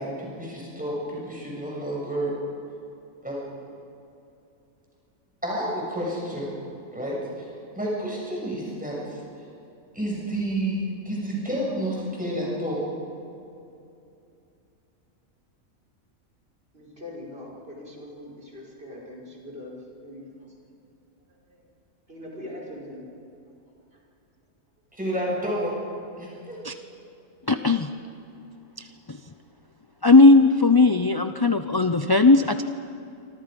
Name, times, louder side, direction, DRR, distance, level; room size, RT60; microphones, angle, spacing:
voice 1, 0.0-2.4 3.2-3.7 5.4-6.5 6.9-7.4 7.8-9.2 9.9-12.8 24.9-25.8 26.2-26.6, right 1 dB, 5° right, -4 dB, 7.0 m, -30 dB
voice 2, 16.7-20.7 21.3-21.7 22.1-23.1 23.9-24.0, left 1 dB, 45° right, -2 dB, 5.9 m, -42 dB
voice 3, 27.5-27.9 28.8-29.2 30.0-32.6, left 3 dB, 25° left, 8 dB, 0.5 m, -17 dB
28.0 x 25.0 x 5.4 m, 2.7 s
omnidirectional pair, 1.4 m